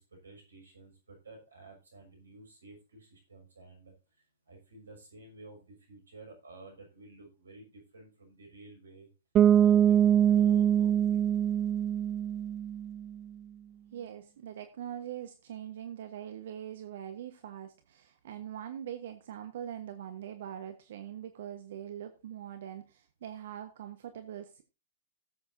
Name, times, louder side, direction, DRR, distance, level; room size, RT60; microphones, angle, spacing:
voice 1, 0.0-9.1 9.5-11.2, right 2 dB, 80° right, 3 dB, 6.2 m, -52 dB
Bass guitar, 9.3-13.1, right 9 dB, 25° right, 0.4 m, -24 dB
voice 2, 13.9-24.6, right 10 dB, 60° right, 8 dB, 1.2 m, -42 dB
17.5 x 8.0 x 2.7 m, 0.30 s
figure-of-eight pair, 110°, 0 cm